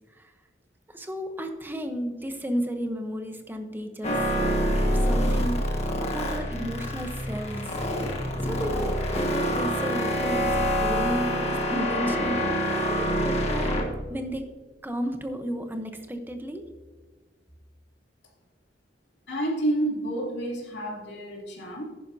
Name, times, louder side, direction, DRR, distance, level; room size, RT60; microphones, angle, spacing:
voice 1, 0.9-4.2 4.9-7.8 8.4-13.8 14.1-14.4 14.8-16.6, equal, 10° right, 6 dB, 0.9 m, -33 dB
sound 1, 4.0-13.8, equal, 35° left, 1.5 m, -26 dB
voice 2, 19.3-21.8, right 1 dB, 75° left, -2 dB, 2.8 m, -29 dB
11.0 x 10.0 x 2.7 m, 1.4 s
head